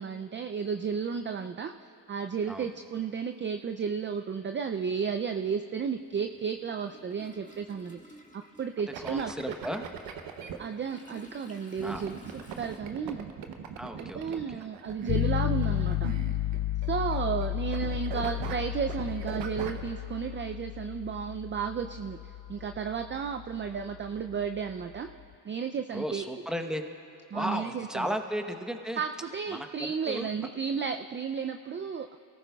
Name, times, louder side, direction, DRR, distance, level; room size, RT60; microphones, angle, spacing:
voice 1, 0.0-9.5 10.6-13.3 14.0-16.1 16.9-25.1 25.5-26.2 27.3-28.1 29.0-32.2, right 6 dB, 30° right, 6 dB, 0.4 m, -33 dB
Toilet flush, 2.3-2.4 3.7-3.8 4.2-12.8, equal, 15° left, 1.7 m, -53 dB
sound 1, 8.9-10.6 11.8-17.5 17.7-19.9, right 7 dB, 85° right, 0.9 m, -40 dB
voice 2, 9.0-9.8 11.8-12.0 13.8-14.6 25.9-26.8 27.3-29.0 29.5-30.3, equal, ahead, 5 dB, 1.0 m, -35 dB
sound 2, 15.1-25.0, left 14 dB, 55° left, 0.6 m, -33 dB
23.0 x 14.0 x 2.3 m, 2.7 s
cardioid pair, 65°, 43 cm